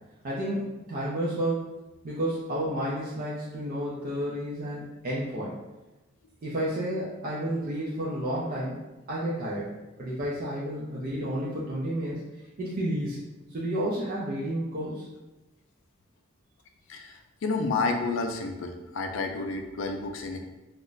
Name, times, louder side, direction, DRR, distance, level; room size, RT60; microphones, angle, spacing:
voice 1, 0.2-1.7 2.0-5.6 6.4-8.8 9.1-9.7 10.0-12.2 12.6-13.2 13.5-15.0, right 1 dB, 45° right, -7 dB, 0.4 m, -31 dB
voice 2, 16.9-20.4, left 3 dB, 65° left, 4 dB, 0.4 m, -30 dB
2.4 x 2.1 x 3.8 m, 1.1 s
head